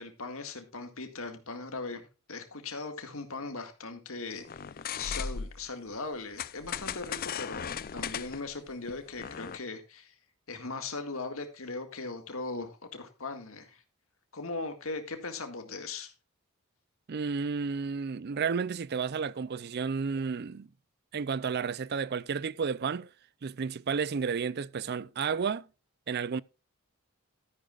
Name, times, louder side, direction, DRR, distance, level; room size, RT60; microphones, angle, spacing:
voice 1, 0.0-10.1 10.5-13.8 14.3-16.1, left 3 dB, 65° left, 2.0 m, -39 dB
sound 1, 4.4-5.7 6.4-9.6, left 7 dB, 40° left, 0.4 m, -37 dB
voice 2, 17.1-20.7 21.1-23.1 23.4-25.7 26.1-26.4, right 5 dB, 45° right, 0.4 m, -32 dB
13.0 x 10.0 x 2.4 m
head